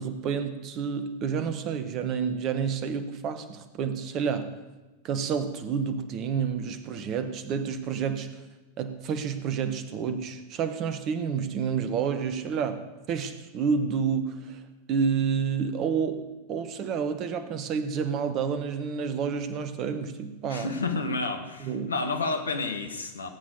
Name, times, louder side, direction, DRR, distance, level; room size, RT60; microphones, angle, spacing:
voice 1, 0.0-4.5 5.0-8.4 8.8-14.6 14.9-20.7 21.6-21.9, right 6 dB, 35° right, 11 dB, 1.3 m, -29 dB
voice 2, 20.5-23.3, left 3 dB, 75° left, 6 dB, 1.6 m, -30 dB
18.0 x 8.7 x 7.1 m, 1.1 s
figure-of-eight pair, 90°, 0 cm